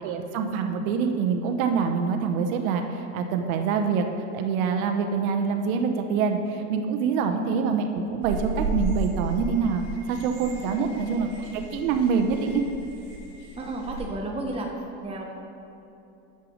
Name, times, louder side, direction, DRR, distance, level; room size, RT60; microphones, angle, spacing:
voice 1, 0.0-4.0 4.3-11.3 11.5-12.6, right 6 dB, 80° right, 5 dB, 0.9 m, -25 dB
sound 1, 8.2-14.1, right 2 dB, 60° right, 2.2 m, -34 dB
voice 2, 13.6-14.7 15.0-15.3, right 2 dB, 15° right, 0 dB, 1.0 m, -33 dB
8.3 x 6.5 x 6.3 m, 2.9 s
supercardioid pair, 110°, 41 cm